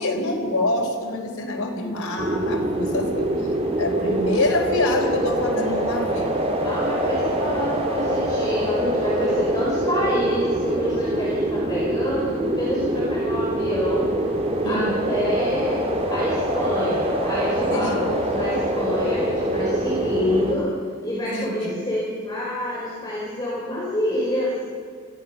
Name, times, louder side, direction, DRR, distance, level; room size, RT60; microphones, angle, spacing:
voice 1, 0.0-6.4 14.6-15.0 17.7-18.1 21.3-21.8, left 1 dB, 85° left, 1 dB, 4.2 m, -26 dB
sound 1, 2.2-20.5, right 1 dB, 25° right, 2.3 m, -24 dB
voice 2, 6.6-14.1 14.6-20.7 21.0-24.6, left 1 dB, 20° left, -7 dB, 4.7 m, -27 dB
25.5 x 16.0 x 6.7 m, 2.1 s
head